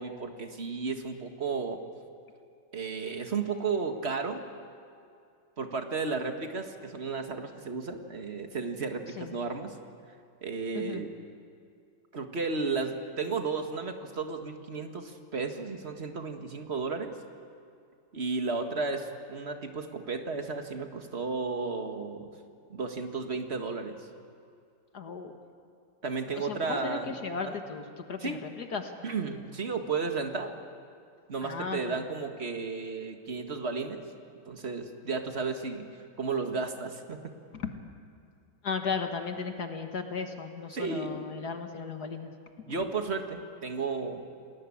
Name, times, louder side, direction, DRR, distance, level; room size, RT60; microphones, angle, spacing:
voice 1, 0.0-1.8 2.7-4.4 5.6-9.7 10.4-11.1 12.1-17.2 18.1-22.3 22.7-24.0 26.0-27.1 27.4-27.5 28.2-28.4 29.0-30.5 31.3-34.0 34.5-35.9 36.2-37.3 40.7-41.3 42.7-44.2, right 4 dB, 35° right, 5 dB, 1.9 m, -33 dB
voice 2, 10.7-11.0 24.9-25.3 26.4-28.9 31.4-32.0 37.5-37.7 38.6-42.3, left 5 dB, 60° left, 5 dB, 2.0 m, -35 dB
29.0 x 20.0 x 8.6 m, 2.4 s
omnidirectional pair, 2.0 m